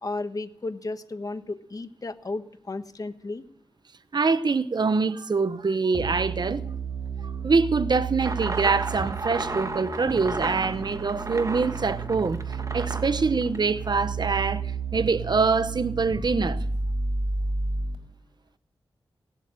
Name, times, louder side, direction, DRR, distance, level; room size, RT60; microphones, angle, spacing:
voice 1, 0.0-3.4, left 2 dB, 40° left, 1.1 m, -34 dB
voice 2, 4.1-6.6 7.2-12.4 12.7-14.6 14.9-16.6, right 4 dB, 55° right, 0.9 m, -24 dB
sound 1, 5.9-18.0, right 4 dB, 75° right, 3.7 m, -32 dB
sound 2, 8.2-14.1, right 3 dB, 40° right, 1.3 m, -34 dB
17.5 x 8.4 x 7.6 m
cardioid pair, 65°, 9 cm